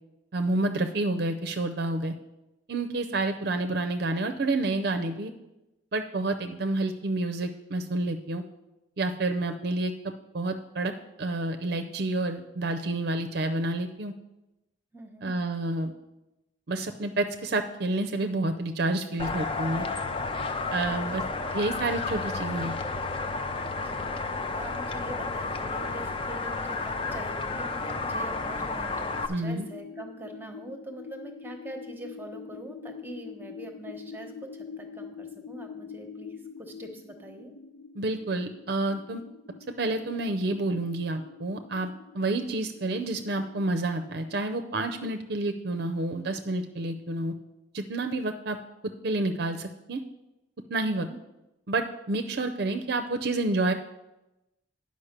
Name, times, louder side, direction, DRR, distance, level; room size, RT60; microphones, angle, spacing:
voice 1, 0.3-2.1 2.7-5.3 5.9-8.4 9.0-9.9 10.3-10.9 11.2-14.1 15.2-15.9 16.7-19.9 20.7-21.2 21.5-22.7 29.3-29.7 38.0-39.2 39.7-41.9 42.1-47.3 47.7-48.6 48.8-50.0 50.7-51.1 51.7-53.7, right 2 dB, 55° right, 5 dB, 0.5 m, -29 dB
voice 2, 14.9-15.3 20.9-21.4 23.8-24.1 24.5-37.5 50.8-51.2, right 1 dB, 10° right, 4 dB, 1.0 m, -43 dB
sound 1, 19.2-29.3, left 3 dB, 30° left, 0.5 m, -32 dB
sound 2, 29.4-44.4, left 6 dB, 85° left, 0.6 m, -45 dB
9.8 x 5.2 x 6.6 m, 0.96 s
head